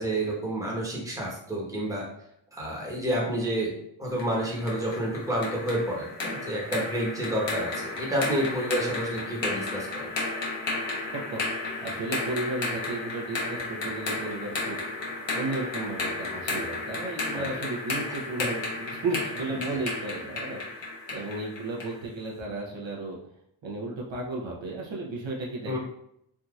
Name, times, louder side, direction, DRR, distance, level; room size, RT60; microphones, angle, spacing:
voice 1, 0.0-2.0 2.5-3.7 4.0-10.1 17.3-17.6 25.6-25.8, right 1 dB, 5° right, -4 dB, 1.1 m, -29 dB
sound 1, 4.2-22.0, left 2 dB, 65° left, 1.0 m, -33 dB
voice 2, 11.8-14.8 15.3-23.2 23.6-25.8, right 2 dB, 65° right, -3 dB, 0.9 m, -34 dB
3.6 x 2.7 x 2.4 m, 0.74 s
cardioid pair, 75°, 48 cm